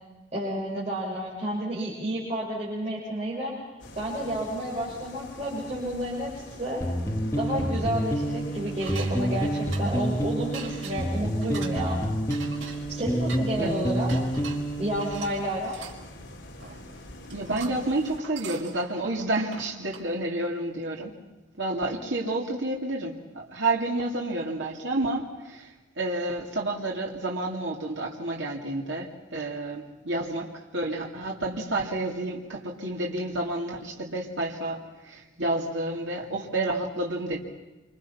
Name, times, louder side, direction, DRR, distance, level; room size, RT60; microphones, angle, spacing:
voice 1, 0.3-3.5 3.9-6.3 6.6-6.8 7.4-12.0 12.9-14.1 14.8-15.8, right 1 dB, 35° right, -7 dB, 6.7 m, -31 dB
sound 1, 3.8-18.2, left 1 dB, 70° left, 3.0 m, -45 dB
sound 2, 6.8-15.2, right 1 dB, 15° left, 1.8 m, -28 dB
sound 3, 8.8-10.1 10.5-11.8 12.3-13.5 14.1-16.0 16.6-17.0 17.2-20.1, right 5 dB, 90° right, 5.1 m, -43 dB
voice 2, 17.3-21.2 21.6-37.4, right 2 dB, 70° right, -1 dB, 2.8 m, -30 dB
28.5 x 26.0 x 5.8 m, 1.1 s
head